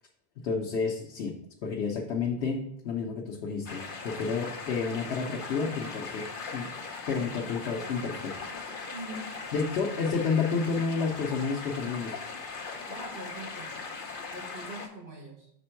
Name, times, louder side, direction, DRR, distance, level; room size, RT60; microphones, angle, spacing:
voice 1, 0.4-1.3 1.6-6.7 7.1-8.3 9.5-12.2, left 5 dB, 85° left, -1 dB, 1.0 m, -30 dB
sound 1, 3.7-14.9, left 4 dB, 60° left, 1.0 m, -39 dB
voice 2, 8.9-9.3 12.9-13.8 14.3-15.5, right 1 dB, 60° right, -1 dB, 1.5 m, -43 dB
6.0 x 4.3 x 4.4 m, 0.76 s
omnidirectional pair, 1.1 m